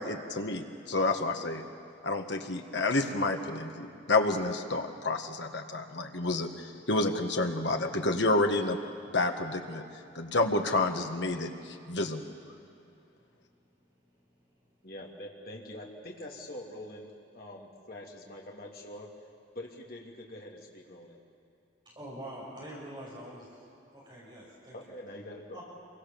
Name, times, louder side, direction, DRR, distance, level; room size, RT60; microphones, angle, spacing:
voice 1, 0.0-1.6 2.0-8.8 9.1-9.8 10.2-12.2, left 2 dB, 70° left, 4 dB, 1.8 m, -29 dB
voice 2, 14.8-19.1 19.5-21.2 24.7-25.6, left 1 dB, 50° left, -1 dB, 3.0 m, -44 dB
voice 3, 21.8-23.5 23.9-24.8 25.5-25.6, right 1 dB, 25° right, -5 dB, 6.3 m, -44 dB
27.0 x 23.5 x 7.2 m, 2.7 s
head